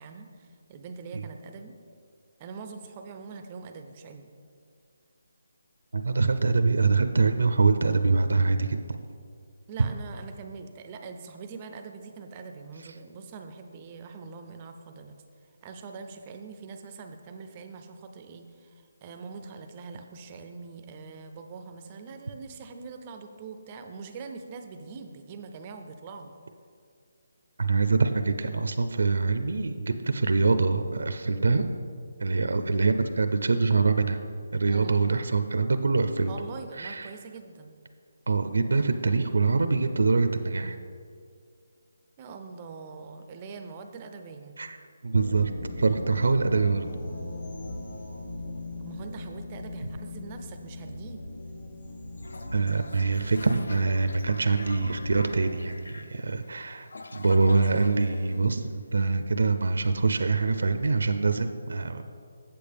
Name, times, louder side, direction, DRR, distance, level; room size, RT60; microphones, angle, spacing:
voice 1, 0.0-1.7 2.4-4.3 9.7-15.1 15.6-26.3 34.7-35.0 36.3-37.8 42.2-44.5 48.8-51.3, right 4 dB, 20° right, 6 dB, 0.3 m, -43 dB
voice 2, 5.9-8.8 27.6-31.7 32.2-34.2 34.5-36.3 36.8-37.1 38.3-40.8 44.6-44.8 45.0-45.5 45.8-46.9 52.5-62.0, right 4 dB, 80° right, 8 dB, 0.5 m, -24 dB
sound 1, 45.1-55.3, left 2 dB, 50° left, 1.3 m, -39 dB
Toilet flush, 52.2-59.1, left 3 dB, 75° left, 0.5 m, -45 dB
8.5 x 7.7 x 3.4 m, 2.3 s
hypercardioid pair, 175°, 0 cm